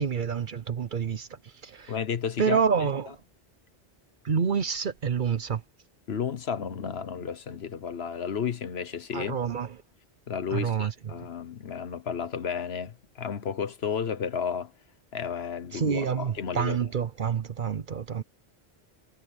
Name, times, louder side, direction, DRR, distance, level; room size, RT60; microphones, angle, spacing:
voice 1, 0.0-2.0 2.4-3.2 4.2-5.6 9.1-9.7 10.5-10.9 15.7-18.2, right 6 dB, 50° right, 0.8 m, -28 dB
voice 2, 1.9-2.6 6.1-9.4 10.3-14.7 15.1-16.8, left 7 dB, 65° left, 1.2 m, -32 dB
omnidirectional pair, 1.1 m